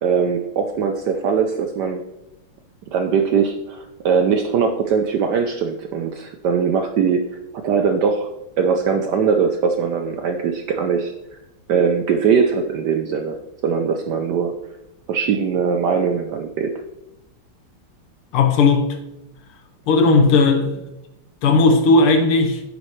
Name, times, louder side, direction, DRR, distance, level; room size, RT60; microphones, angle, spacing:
voice 1, 0.0-2.0 2.9-7.2 7.6-8.3 8.6-11.4 11.7-14.6 15.1-16.7, right 6 dB, 75° right, 1.0 m, -21 dB
voice 2, 18.3-19.0 19.9-20.8 21.4-22.6, left 3 dB, 80° left, 1.9 m, -15 dB
9.4 x 7.5 x 3.1 m
omnidirectional pair, 2.4 m